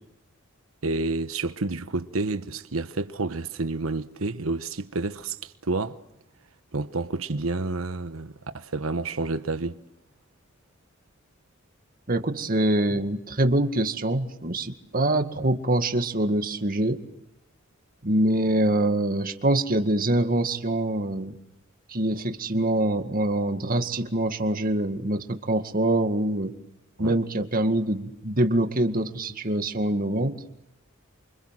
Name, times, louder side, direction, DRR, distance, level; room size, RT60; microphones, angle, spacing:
voice 1, 0.8-6.0 6.7-9.8 27.0-27.1, right 3 dB, 85° right, 1.1 m, -29 dB
voice 2, 12.1-17.0 18.0-21.4 21.9-26.5 27.0-30.4, right 1 dB, 45° right, 2.1 m, -24 dB
29.5 x 25.5 x 7.6 m
head